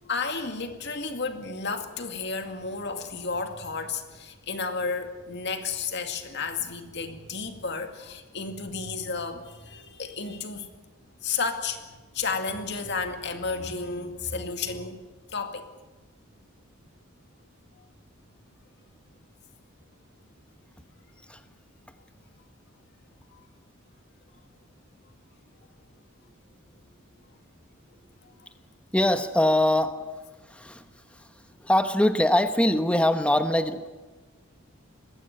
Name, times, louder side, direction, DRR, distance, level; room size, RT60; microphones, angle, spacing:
voice 1, 0.1-10.7 11.2-11.8 12.1-15.0 15.3-15.7 23.3-23.4, left 4 dB, 55° left, 6 dB, 2.2 m, -32 dB
voice 2, 28.9-30.0 30.5-30.8 31.6-33.9, left 1 dB, 5° left, 8 dB, 1.0 m, -22 dB
21.0 x 15.5 x 9.2 m, 1.2 s
head